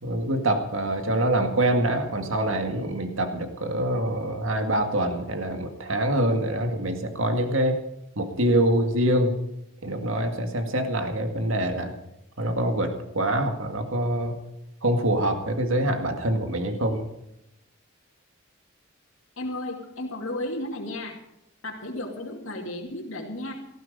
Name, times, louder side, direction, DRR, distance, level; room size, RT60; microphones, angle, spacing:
voice 1, 0.0-7.8 8.2-9.4 9.8-12.0 12.4-14.4 14.8-17.0, right 1 dB, 70° right, 5 dB, 2.0 m, -25 dB
voice 2, 19.4-21.2 21.6-23.5, left 1 dB, 75° left, -3 dB, 2.5 m, -33 dB
18.0 x 14.5 x 5.3 m, 0.84 s
head